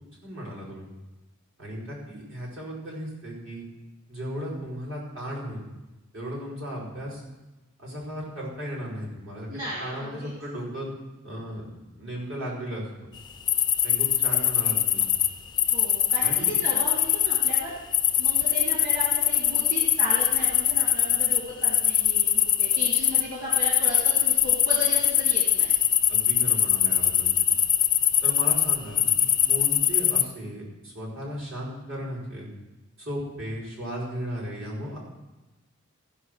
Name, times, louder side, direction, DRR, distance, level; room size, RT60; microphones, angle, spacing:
voice 1, 0.2-0.9 1.6-3.6 4.1-5.6 6.1-7.2 7.8-10.9 11.2-11.6 11.9-13.1 13.8-15.1 16.2-16.5 26.1-27.6 28.2-32.5 33.0-35.0, equal, 70° right, -6 dB, 4.7 m, -36 dB
voice 2, 9.5-10.3 15.7-17.7 18.2-25.7, left 1 dB, 40° right, -7 dB, 2.6 m, -35 dB
sound 1, 13.5-15.3 15.6-17.6 17.9-23.2 23.5-30.2, left 9 dB, 20° left, 0.3 m, -22 dB
15.5 x 5.6 x 6.4 m, 1.1 s
head